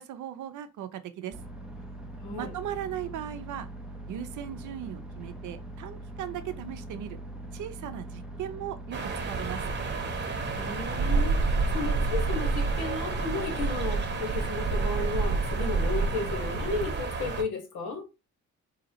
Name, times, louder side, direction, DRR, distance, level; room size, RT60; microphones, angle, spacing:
voice 1, 0.0-1.4 2.4-3.7 4.1-7.2 7.5-9.7, right 11 dB, 75° right, 0.6 m, -38 dB
sound 1, 1.3-16.9, right 1 dB, ahead, 0.6 m, -42 dB
voice 2, 2.2-2.5 10.5-18.0, left 3 dB, 80° left, 1.5 m, -34 dB
sound 2, 8.9-17.4, right 4 dB, 40° right, 1.1 m, -29 dB
3.8 x 2.9 x 2.8 m
cardioid pair, 90°, 30 cm